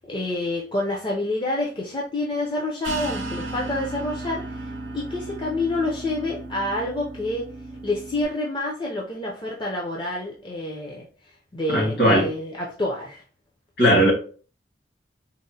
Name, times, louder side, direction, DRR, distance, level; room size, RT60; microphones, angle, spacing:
voice 1, 0.1-7.4 7.8-11.1 11.5-13.2, left 2 dB, 25° left, 0.5 m, -28 dB
sound 1, 2.8-8.2, right 2 dB, 85° right, 0.6 m, -35 dB
voice 2, 11.7-12.3 13.8-14.1, equal, 55° left, 1.6 m, -18 dB
3.9 x 2.1 x 2.7 m
head